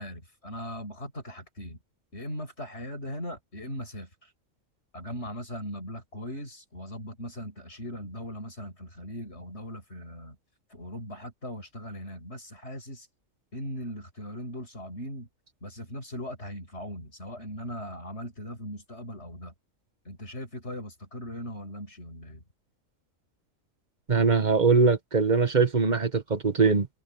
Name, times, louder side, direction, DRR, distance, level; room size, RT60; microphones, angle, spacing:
voice 1, 0.0-1.8 2.1-4.3 4.9-10.4 10.7-13.1 13.5-15.3 15.6-19.5 20.0-22.4, equal, 55° left, 8.5 m, -39 dB
voice 2, 24.1-26.9, right 4 dB, 35° right, 1.4 m, -22 dB
omnidirectional pair, 1.3 m